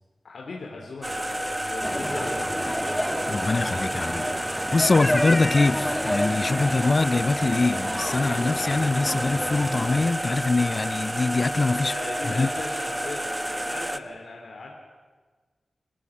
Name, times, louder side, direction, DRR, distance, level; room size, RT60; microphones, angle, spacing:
voice 1, 0.2-3.2 11.7-14.7, left 3 dB, 80° left, 3.1 m, -38 dB
sound 1, 1.0-14.0, right 1 dB, 15° right, 1.1 m, -30 dB
sound 2, 1.8-10.1, left 1 dB, 10° left, 1.7 m, -30 dB
voice 2, 3.3-11.9 12.3-12.5, left 3 dB, 45° left, 0.5 m, -24 dB
28.0 x 15.0 x 7.2 m
cardioid pair, 65°, 0 cm